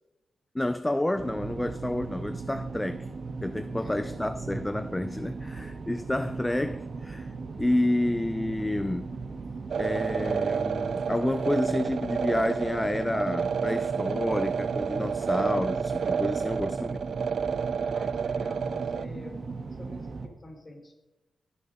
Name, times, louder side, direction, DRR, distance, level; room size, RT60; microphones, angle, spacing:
voice 1, 0.5-3.1 3.4-7.3 7.6-9.2 9.8-17.0, left 1 dB, 10° left, 0.5 m, -29 dB
sound 1, 1.1-20.3, right 4 dB, 45° right, 2.0 m, -37 dB
voice 2, 3.8-4.2 17.9-19.4 19.7-20.9, left 1 dB, 30° left, 3.8 m, -46 dB
sound 2, 9.7-19.1, right 6 dB, 65° right, 0.4 m, -30 dB
14.0 x 11.0 x 5.0 m
cardioid pair, 105°, 0 cm